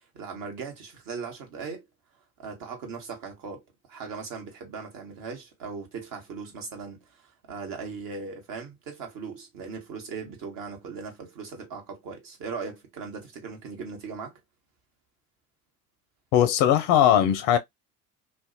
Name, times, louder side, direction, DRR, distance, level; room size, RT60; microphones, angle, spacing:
voice 1, 0.1-1.9 2.4-3.6 3.9-14.4, right 5 dB, 45° right, 1.2 m, -38 dB
voice 2, 16.3-17.6, left 10 dB, 45° left, 0.4 m, -19 dB
2.5 x 2.0 x 2.6 m
figure-of-eight pair, 65°, 47 cm